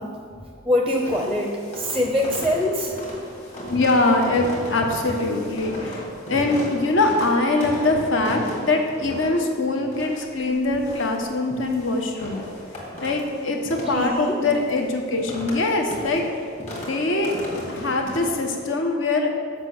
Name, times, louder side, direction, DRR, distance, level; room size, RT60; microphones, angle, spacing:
voice 1, 0.0-2.9 13.8-14.4, left 1 dB, 5° right, 1 dB, 0.6 m, -24 dB
sound 1, 0.9-18.6, equal, 35° left, 1.7 m, -36 dB
voice 2, 3.7-12.4 13.0-16.5 16.7-17.3 17.7-19.3, left 2 dB, 60° left, 3 dB, 1.0 m, -23 dB
7.3 x 5.5 x 6.4 m, 2.2 s
head